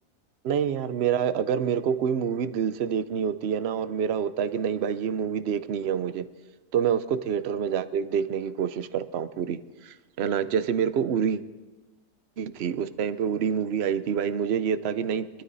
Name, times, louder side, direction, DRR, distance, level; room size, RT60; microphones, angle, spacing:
voice 1, 0.4-6.2 6.7-11.4 12.4-15.4, right 8 dB, 55° right, 13 dB, 0.8 m, -27 dB
25.5 x 13.0 x 4.1 m, 1.2 s
omnidirectional pair, 1.6 m